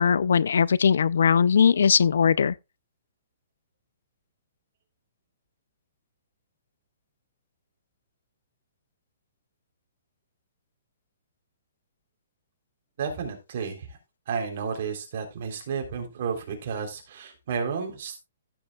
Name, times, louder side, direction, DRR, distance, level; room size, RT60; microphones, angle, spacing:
voice 1, 0.0-2.5, left 6 dB, 80° left, 0.5 m, -20 dB
voice 2, 13.0-13.9 14.3-18.2, right 6 dB, 45° right, 3.5 m, -32 dB
15.0 x 7.9 x 2.3 m
hypercardioid pair, 165°, 0 cm